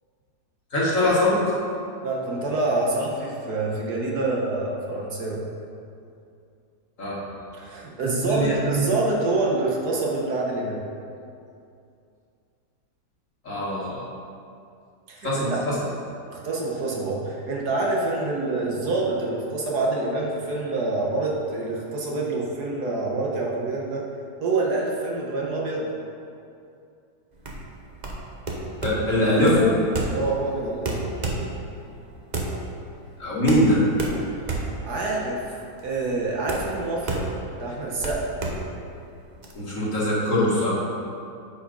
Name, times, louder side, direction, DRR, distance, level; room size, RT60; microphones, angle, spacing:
voice 1, 0.7-1.4 7.0-7.2 8.0-8.9 13.4-14.0 15.2-15.8 28.8-29.7 33.2-33.8 39.5-40.7, left 1 dB, 45° left, -7 dB, 2.0 m, -22 dB
voice 2, 2.0-5.4 7.5-10.8 15.1-15.6 16.3-24.1 24.4-25.9 30.1-30.9 34.6-35.4 35.8-37.2 37.6-38.3, right 2 dB, 60° right, -2 dB, 1.6 m, -26 dB
sound 1, 27.3-39.5, right 2 dB, 35° right, 0.7 m, -31 dB
8.8 x 5.1 x 5.3 m, 2.5 s
omnidirectional pair, 2.0 m